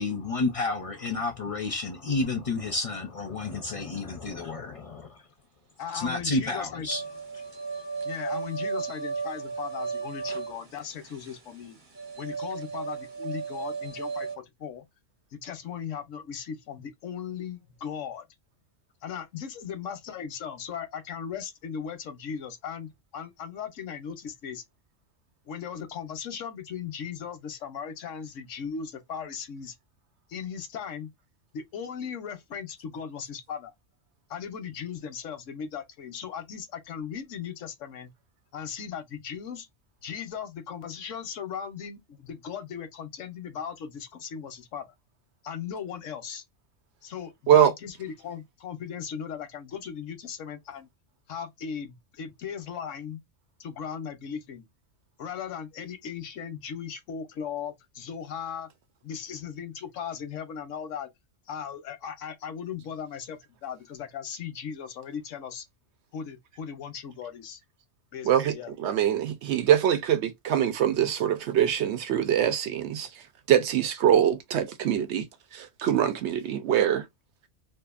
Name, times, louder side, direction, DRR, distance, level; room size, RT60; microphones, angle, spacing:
voice 1, 0.0-5.2 5.9-7.0, left 3 dB, 40° left, 0.5 m, -30 dB
voice 2, 5.8-6.9 8.0-11.8 12.2-14.8 15.3-18.2 19.0-24.6 25.4-29.7 30.3-31.1 31.5-33.7 34.3-38.1 38.5-39.7 40.0-44.9 45.4-46.4 47.0-50.9 51.3-53.2 53.6-54.7 55.2-58.7 59.0-61.1 61.5-65.6 66.1-67.6 68.1-68.7, left 7 dB, 80° left, 1.1 m, -37 dB
sound 1, 6.9-14.4, right 5 dB, 40° right, 1.1 m, -35 dB
voice 3, 68.2-73.1 73.5-75.3 75.5-77.1, right 10 dB, 70° right, 0.8 m, -23 dB
2.7 x 2.4 x 2.3 m
omnidirectional pair, 1.3 m